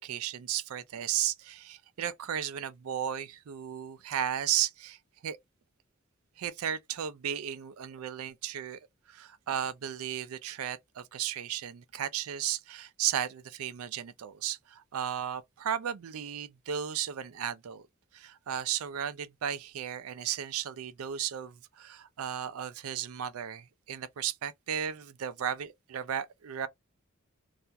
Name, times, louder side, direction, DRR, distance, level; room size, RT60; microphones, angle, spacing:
voice 1, 0.0-5.4 6.4-8.8 9.1-17.9 18.1-26.7, right 10 dB, 80° right, 0.4 m, -35 dB
2.4 x 2.2 x 2.7 m
head